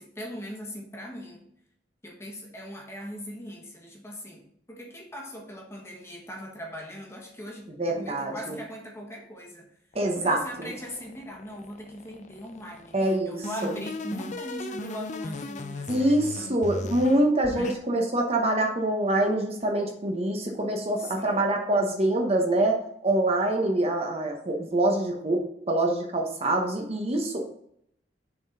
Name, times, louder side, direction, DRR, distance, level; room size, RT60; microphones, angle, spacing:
voice 1, 0.0-1.5 2.0-9.7 10.1-13.0 13.2-16.6 17.5-17.8 21.0-21.6, equal, 15° left, 0 dB, 1.6 m, -40 dB
voice 2, 7.8-8.6 9.9-10.7 12.9-13.7 15.9-25.4 25.7-27.5, right 1 dB, 35° right, 2 dB, 1.1 m, -25 dB
sound 1, 9.9-13.0 13.4-17.8, left 2 dB, 40° left, 0.6 m, -38 dB
6.9 x 4.4 x 5.5 m, 0.71 s
head